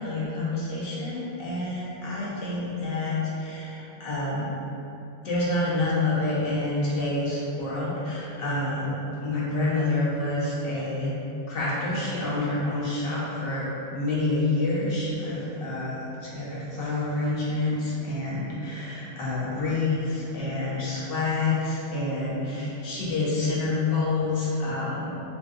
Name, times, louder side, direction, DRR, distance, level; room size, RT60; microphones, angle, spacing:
voice 1, 0.0-4.5 5.2-11.2 11.5-25.1, left 2 dB, 55° left, -6 dB, 0.9 m, -28 dB
3.8 x 2.6 x 2.4 m, 2.9 s
omnidirectional pair, 1.3 m